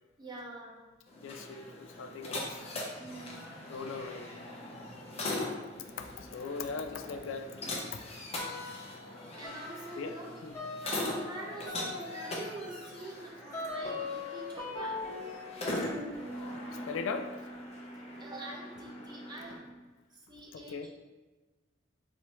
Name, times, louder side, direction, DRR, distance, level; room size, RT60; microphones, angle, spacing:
voice 1, 0.2-0.8 3.0-3.5 9.4-10.3 10.6-15.0 18.2-19.7 20.1-20.9, right 2 dB, 20° right, -2 dB, 0.7 m, -45 dB
sound 1, 1.1-19.6, left 2 dB, 35° left, 0.7 m, -41 dB
voice 2, 1.2-2.6 3.7-4.3 5.8-7.6 10.0-10.5 16.9-17.3 20.5-20.9, left 4 dB, 85° left, 7 dB, 0.3 m, -39 dB
sound 2, 8.3-9.1 9.4-19.8, left 2 dB, 20° left, 1.5 m, -42 dB
4.4 x 3.2 x 3.0 m, 1.2 s
head